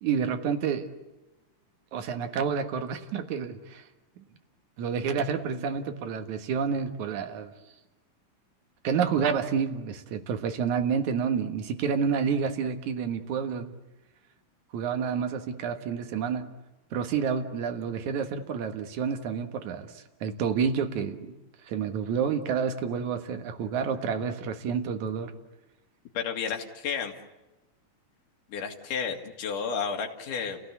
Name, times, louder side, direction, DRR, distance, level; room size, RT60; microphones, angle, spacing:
voice 1, 0.0-0.9 1.9-3.8 4.8-7.5 8.8-13.7 14.7-16.5 16.9-21.4 21.7-25.3, right 6 dB, 60° right, 6 dB, 2.7 m, -29 dB
voice 2, 26.1-27.1 28.5-30.6, left 6 dB, 70° left, 3 dB, 3.6 m, -32 dB
30.0 x 17.0 x 8.2 m, 1.0 s
omnidirectional pair, 4.0 m